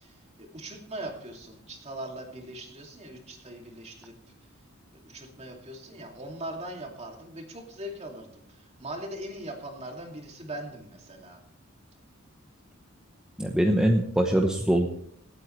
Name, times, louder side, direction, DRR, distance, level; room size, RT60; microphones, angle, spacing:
voice 1, 0.0-4.1 4.9-11.4, right 1 dB, 30° right, 1 dB, 2.6 m, -40 dB
voice 2, 13.4-14.9, right 1 dB, 5° right, 1 dB, 0.9 m, -23 dB
25.5 x 9.1 x 3.3 m, 0.68 s
head